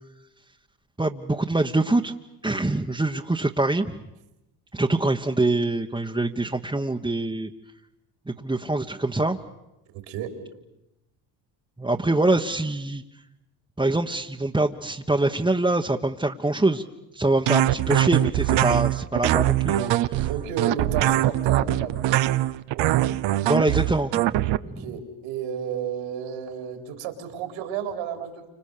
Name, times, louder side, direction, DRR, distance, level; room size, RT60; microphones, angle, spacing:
voice 1, 1.0-2.1 2.4-4.0 4.7-7.5 8.3-9.4 11.8-13.0 13.8-16.8 17.1-20.3 23.4-24.3 24.7-24.9, right 2 dB, 10° right, 0 dB, 1.2 m, -24 dB
sound 1, 17.5-24.6, right 14 dB, 60° right, 0.9 m, -22 dB
voice 2, 20.3-22.1 22.7-23.0 23.4-23.5 24.6-28.5, right 8 dB, 75° right, 6 dB, 4.0 m, -32 dB
29.5 x 26.5 x 6.8 m, 0.91 s
hypercardioid pair, 70°, 49 cm